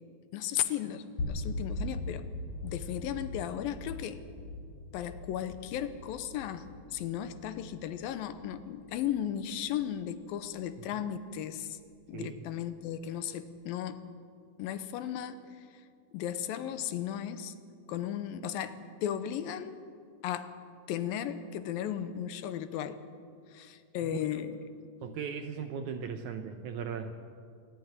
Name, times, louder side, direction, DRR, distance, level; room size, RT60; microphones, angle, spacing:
voice 1, 0.3-2.3 2.6-4.2 4.9-11.8 12.1-14.1 14.6-15.8 16.1-17.5 17.9-19.8 20.2-20.6 20.9-23.0 23.5-24.6, left 10 dB, 80° left, 12 dB, 2.5 m, -35 dB
sound 1, 1.2-11.2, left 2 dB, 45° left, 2.4 m, -41 dB
voice 2, 12.1-12.4 24.0-24.1 25.0-27.1, right 6 dB, 70° right, 7 dB, 1.9 m, -38 dB
27.0 x 11.0 x 9.3 m, 2.3 s
omnidirectional pair, 4.2 m